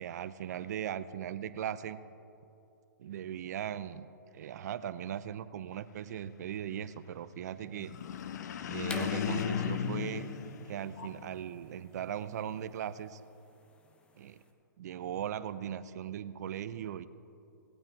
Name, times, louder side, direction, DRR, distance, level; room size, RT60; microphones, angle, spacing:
voice 1, 0.0-2.0 3.0-4.1 4.3-7.9 8.7-10.3 10.7-13.2 14.2-14.4 14.8-17.1, right 10 dB, 55° right, 14 dB, 0.5 m, -38 dB
sound 1, 7.8-11.4, left 8 dB, 55° left, 0.7 m, -35 dB
sound 2, 8.8-14.4, left 3 dB, 10° left, 0.8 m, -47 dB
18.5 x 8.8 x 4.5 m, 2.9 s
hypercardioid pair, 140°, 11 cm